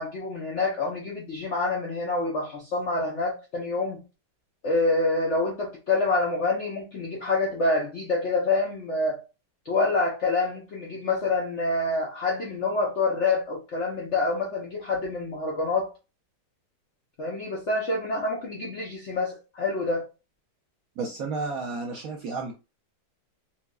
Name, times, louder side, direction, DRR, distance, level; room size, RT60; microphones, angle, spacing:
voice 1, 0.0-4.0 4.6-9.2 9.7-15.9 17.2-20.1, left 3 dB, 65° left, 0.7 m, -27 dB
voice 2, 21.0-22.5, right 4 dB, 75° right, 0.8 m, -32 dB
4.4 x 2.1 x 2.3 m
omnidirectional pair, 2.0 m